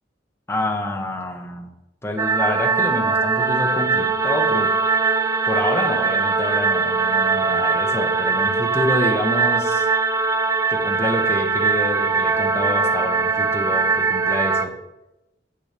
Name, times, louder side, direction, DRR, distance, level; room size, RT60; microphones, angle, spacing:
voice 1, 0.5-1.7 2.0-4.7 5.5-9.9 10.7-14.7, left 1 dB, 15° left, 1 dB, 1.1 m, -27 dB
sound 1, 2.2-14.7, right 4 dB, 15° right, 0.4 m, -21 dB
9.1 x 8.1 x 3.5 m, 0.92 s
head